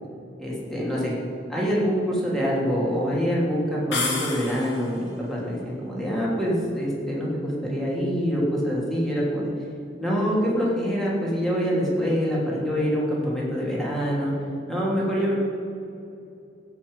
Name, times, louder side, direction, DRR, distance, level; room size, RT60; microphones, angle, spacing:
voice 1, 0.4-1.1 1.5-9.5 10.0-14.3 14.7-15.3, equal, ahead, -5 dB, 3.0 m, -25 dB
sound 1, 3.9-5.0, left 3 dB, 90° left, 2.4 m, -29 dB
15.5 x 5.9 x 8.1 m, 2.7 s
head